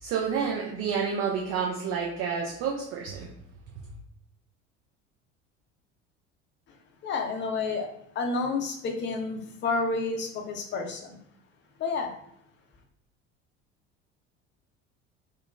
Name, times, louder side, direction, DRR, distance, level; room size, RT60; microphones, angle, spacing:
voice 1, 0.0-3.3, right 6 dB, 40° right, -1 dB, 0.6 m, -29 dB
voice 2, 7.0-7.9 8.1-11.2 11.8-12.1, left 3 dB, 30° left, 3 dB, 0.6 m, -30 dB
3.7 x 2.1 x 2.2 m, 0.73 s
figure-of-eight pair, 65°, 38 cm